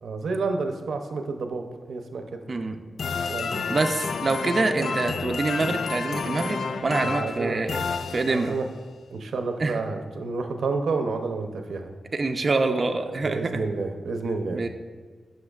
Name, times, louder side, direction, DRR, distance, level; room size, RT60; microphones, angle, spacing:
voice 1, 0.0-2.4 3.3-3.7 4.8-5.1 7.0-7.6 8.3-8.6 9.1-11.9 13.2-14.7, right 3 dB, 85° right, 5 dB, 0.7 m, -30 dB
voice 2, 2.5-2.8 3.7-7.8 8.1-8.6 9.6-9.8 12.1-13.7 14.5-14.7, right 3 dB, 45° right, 5 dB, 0.5 m, -26 dB
sound 1, 3.0-8.7, left 5 dB, 75° left, 0.4 m, -30 dB
11.5 x 6.4 x 2.4 m, 1.5 s
cardioid pair, 80°, 0 cm